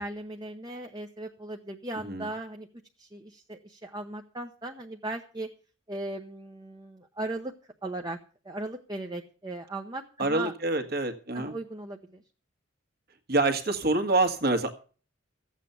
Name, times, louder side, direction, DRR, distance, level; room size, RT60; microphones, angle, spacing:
voice 1, 0.0-2.7 3.0-5.5 5.9-7.5 7.8-8.2 8.4-10.5 11.3-12.2, right 2 dB, 20° right, 3 dB, 0.9 m, -37 dB
voice 2, 10.2-11.6 13.3-14.7, right 2 dB, 55° right, 6 dB, 1.8 m, -26 dB
14.0 x 8.3 x 6.9 m, 0.39 s
head